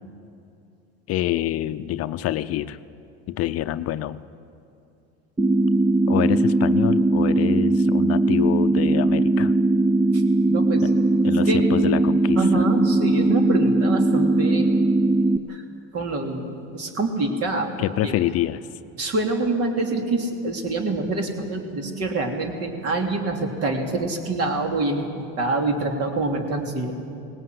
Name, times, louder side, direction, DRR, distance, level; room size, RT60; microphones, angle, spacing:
voice 1, 1.1-2.8 3.3-4.2 6.1-9.5 10.8-10.9 11.2-12.6 17.8-18.6, left 13 dB, 50° left, 13 dB, 0.6 m, -26 dB
sound 1, 5.4-15.4, right 2 dB, 10° right, 0.6 m, -19 dB
voice 2, 10.5-10.8 11.5-11.6 12.4-14.7 15.5-15.6 15.9-17.7 18.0-18.1 19.0-27.0, right 2 dB, 50° right, 3 dB, 3.2 m, -25 dB
18.5 x 17.0 x 9.5 m, 2.6 s
supercardioid pair, 110°, 31 cm